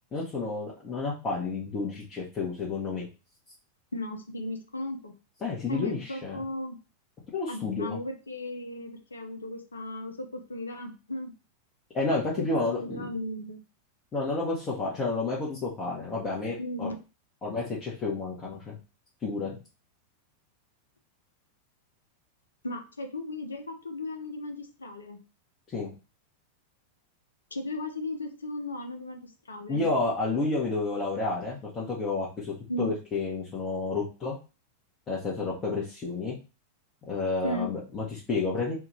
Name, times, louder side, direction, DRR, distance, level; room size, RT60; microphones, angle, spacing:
voice 1, 0.1-3.1 5.4-6.4 7.3-8.0 11.9-13.1 14.1-16.9 17.4-18.8 19.2-19.5 25.7-25.9 29.7-34.4 35.1-36.3 37.1-38.7, left 3 dB, 25° left, -6 dB, 1.0 m, -30 dB
voice 2, 3.9-5.1 5.7-6.8 7.5-11.3 12.4-13.6 16.6-17.0 22.6-25.2 27.5-29.9 32.7-32.9 37.4-37.7, left 1 dB, 75° left, 6 dB, 0.6 m, -36 dB
3.4 x 2.4 x 3.1 m, 0.31 s
figure-of-eight pair, 90°, 0 cm